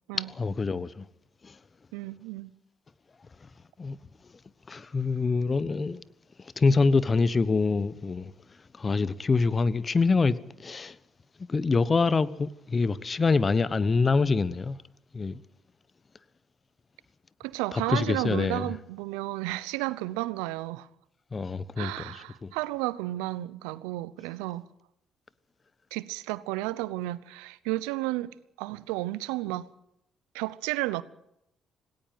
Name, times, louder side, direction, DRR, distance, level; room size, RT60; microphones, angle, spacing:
voice 1, 0.1-1.1 1.4-1.6 3.4-3.5 3.8-4.0 4.2-4.3 4.7-6.0 6.4-11.0 11.5-14.8 15.1-15.4 17.7-18.8 21.3-22.5, left 4 dB, 35° left, 1.2 m, -26 dB
voice 2, 1.9-2.5 17.4-20.9 21.8-24.7 25.9-29.7 30.3-31.0, right 18 dB, 90° right, 0.8 m, -32 dB
18.5 x 17.5 x 9.2 m
supercardioid pair, 60°, 0 cm